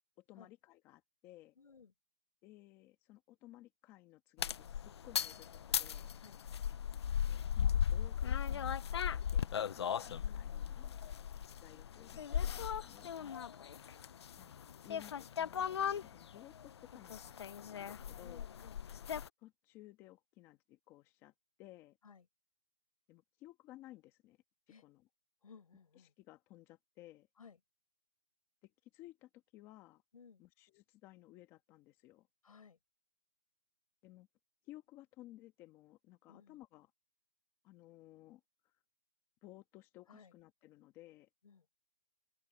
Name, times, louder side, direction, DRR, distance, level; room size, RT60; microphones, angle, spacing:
voice 1, 0.2-1.6 2.4-6.1 7.3-11.0 11.6-13.1 14.4-14.6 14.8-17.3 17.6-18.5 19.4-22.0 23.1-24.4 24.8-25.1 25.9-27.3 28.6-30.0 30.4-32.3 34.0-34.3 34.6-36.9 37.6-38.8 39.4-41.3, left 16 dB, 15° left, 1.5 m, -58 dB
voice 2, 1.6-1.9 6.2-6.4 10.2-10.7 13.1-13.4 18.2-18.8 22.0-22.3 24.7-24.8 25.4-26.1 27.4-27.6 30.1-30.4 32.4-32.8 36.3-36.6 40.1-40.3 41.4-41.6, left 5 dB, 70° left, 6.4 m, -59 dB
sound 1, 4.4-19.3, left 8 dB, 45° left, 0.6 m, -37 dB
open air
hypercardioid pair, 170°, 19 cm